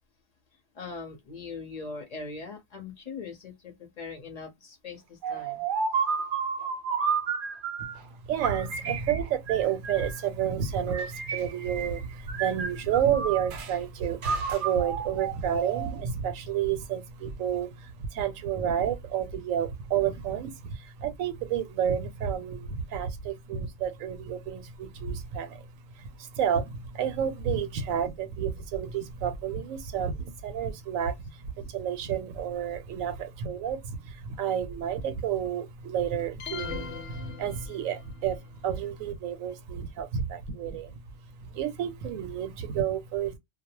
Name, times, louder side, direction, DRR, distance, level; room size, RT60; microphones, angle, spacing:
voice 1, 0.7-5.6, left 4 dB, 40° left, 0.7 m, -41 dB
sound 1, 5.2-8.0 8.4-10.2 10.9-12.0 12.3-13.7 14.2-16.0, right 6 dB, 60° right, 0.5 m, -31 dB
voice 2, 8.3-25.7 26.0-40.9 41.5-43.3, right 8 dB, 80° right, 1.0 m, -30 dB
sound 2, 36.4-38.2, left 7 dB, 70° left, 0.9 m, -40 dB
2.3 x 2.0 x 2.9 m
omnidirectional pair, 1.3 m